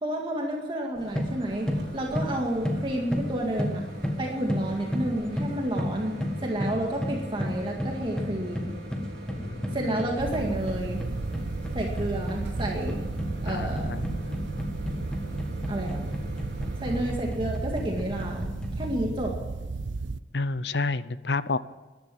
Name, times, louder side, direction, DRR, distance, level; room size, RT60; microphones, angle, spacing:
voice 1, 0.0-3.8 4.2-6.1 6.4-8.7 9.7-11.0 11.7-13.0 13.4-13.9 15.7-16.1 16.8-18.4 18.8-19.3, right 1 dB, 30° right, 0 dB, 2.1 m, -30 dB
sound 1, 1.0-19.0, equal, 5° left, 1.5 m, -34 dB
Microwave oven, 1.0-17.3, right 1 dB, 70° right, 4.0 m, -43 dB
voice 2, 9.4-9.9 13.5-14.5 20.3-21.6, left 3 dB, 65° left, 15 dB, 0.7 m, -30 dB
sound 2, 10.2-20.2, right 3 dB, 90° right, 0.6 m, -34 dB
14.0 x 11.5 x 8.7 m, 1.2 s
head